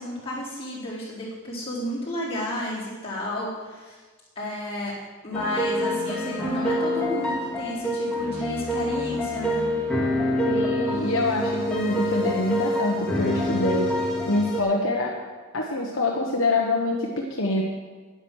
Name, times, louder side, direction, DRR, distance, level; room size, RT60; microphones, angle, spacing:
voice 1, 0.0-4.0 4.4-4.9 5.2-9.7, left 1 dB, 25° left, -8 dB, 4.2 m, -32 dB
sound 1, 5.3-14.6, left 1 dB, 5° left, 1.9 m, -26 dB
voice 2, 10.5-13.9 14.2-15.1 15.5-17.6, left 2 dB, 60° left, -1 dB, 1.2 m, -25 dB
10.0 x 10.0 x 6.4 m, 1.4 s
head